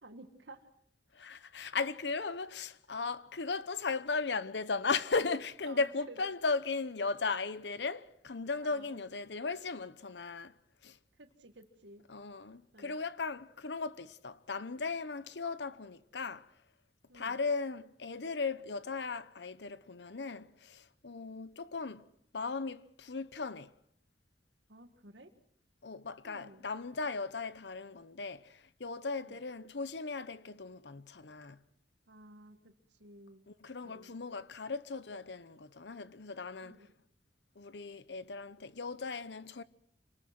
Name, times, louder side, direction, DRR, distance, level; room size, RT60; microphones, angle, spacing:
voice 1, 0.0-0.7 5.7-6.2 8.6-9.0 11.2-12.0 12.7-13.0 17.1-17.4 24.7-25.3 26.2-26.7 29.2-29.4 32.1-33.5 33.8-34.2 36.6-36.8, right 2 dB, 80° right, 1.8 m, -54 dB
voice 2, 1.1-10.5 10.8-11.0 12.1-16.5 17.1-22.1 22.3-23.7 25.8-31.6 33.5-36.9 37.6-39.6, left 4 dB, 75° left, 0.9 m, -37 dB
27.0 x 19.5 x 6.0 m
head